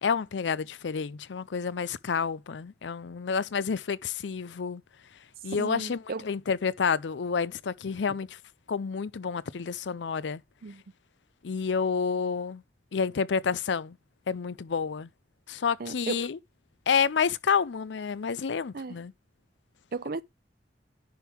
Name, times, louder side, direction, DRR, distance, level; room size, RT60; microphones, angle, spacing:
voice 1, 0.0-4.8 5.4-8.4 8.7-10.4 11.4-12.6 12.9-14.0 14.3-15.1 15.5-16.4 16.9-19.1, left 6 dB, 80° left, 0.5 m, -29 dB
voice 2, 5.6-6.3 10.6-10.8 15.8-16.3 18.7-19.0 19.9-20.2, right 4 dB, 55° right, 0.6 m, -35 dB
10.5 x 3.6 x 5.8 m
head